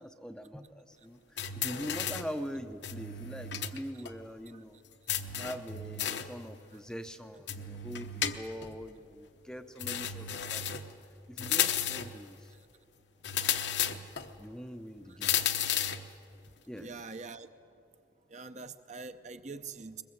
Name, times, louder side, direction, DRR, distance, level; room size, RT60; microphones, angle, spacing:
voice 1, 0.0-4.8 5.4-10.8 11.3-12.5 14.4-15.3 16.7-17.1, equal, 5° left, 7 dB, 0.6 m, -43 dB
sound 1, 1.4-2.4 2.8-3.8 4.0-4.1 5.1-6.4 7.5-8.7 9.8-10.9 11.4-12.2 13.2-14.3 15.2-16.1, left 9 dB, 65° left, 1.0 m, -33 dB
voice 2, 16.8-17.5 18.3-20.0, right 4 dB, 35° right, 9 dB, 0.7 m, -44 dB
21.5 x 21.0 x 7.9 m, 2.5 s
head